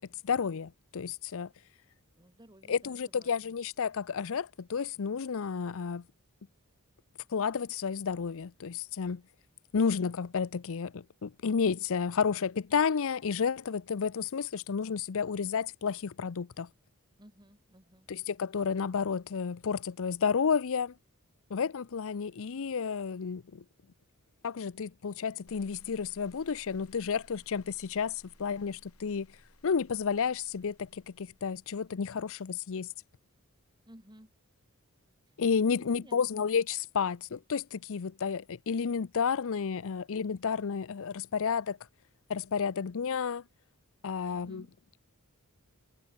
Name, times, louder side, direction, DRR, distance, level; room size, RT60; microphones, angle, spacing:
voice 1, 0.2-1.5 2.7-6.0 7.3-9.2 9.7-16.7 18.1-20.9 21.5-23.6 24.4-29.3 29.6-32.9 35.4-41.8 42.3-43.4 44.0-44.6, left 6 dB, 65° left, 0.6 m, -31 dB
voice 2, 2.1-3.5 17.2-18.1 33.9-34.3 35.7-36.5 44.3-44.7, right 1 dB, 20° right, 4.9 m, -56 dB
sound 1, 25.5-32.6, left 1 dB, 90° left, 7.6 m, -61 dB
head